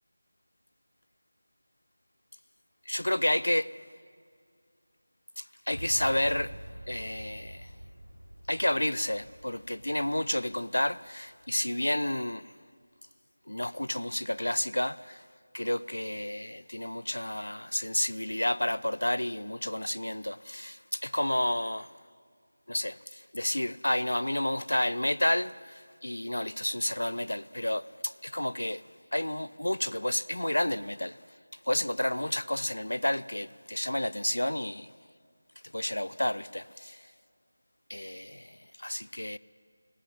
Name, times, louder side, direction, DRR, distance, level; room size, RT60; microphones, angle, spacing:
voice 1, 2.9-3.7 5.4-6.5 6.9-7.7 8.5-12.5 13.5-15.2 15.5-21.9 22.7-28.8 29.1-31.2 31.7-34.9 35.7-37.1 37.9-39.4, left 1 dB, 75° left, 0.5 m, -30 dB
Boom, 5.7-11.6, right 1 dB, 85° right, 4.3 m, -46 dB
19.0 x 17.0 x 9.9 m
figure-of-eight pair, 165°, 0 cm